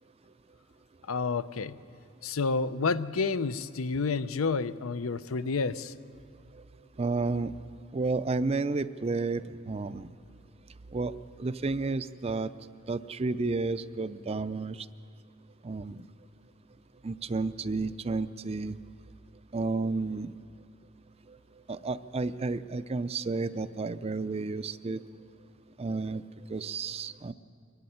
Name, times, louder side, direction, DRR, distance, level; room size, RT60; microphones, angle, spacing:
voice 1, 1.1-1.7 2.2-5.9, left 4 dB, 85° left, 15 dB, 0.6 m, -29 dB
voice 2, 7.0-7.5 7.9-10.1 10.9-11.1 11.4-12.5 12.9-14.8 15.6-16.0 17.0-18.7 19.5-20.3 21.7-25.0 25.8-26.2 26.5-27.3, right 3 dB, 30° right, 14 dB, 0.4 m, -31 dB
24.0 x 12.0 x 9.9 m, 2.3 s
head